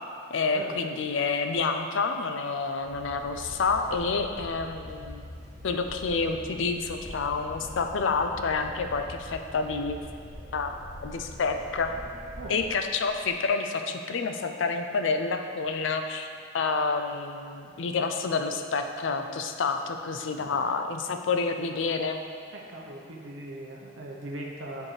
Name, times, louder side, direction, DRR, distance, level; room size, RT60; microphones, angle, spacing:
voice 1, 0.3-5.2 5.6-10.0 10.5-11.9 12.5-16.3 16.5-22.2, left 4 dB, 80° left, 6 dB, 0.5 m, -28 dB
sound 1, 2.8-12.7, left 1 dB, 20° left, 1.2 m, -45 dB
sound 2, 3.2-13.5, equal, 30° right, 1.7 m, -49 dB
voice 2, 22.5-24.9, right 1 dB, 80° right, -2 dB, 0.8 m, -39 dB
9.8 x 4.6 x 3.2 m, 2.3 s
head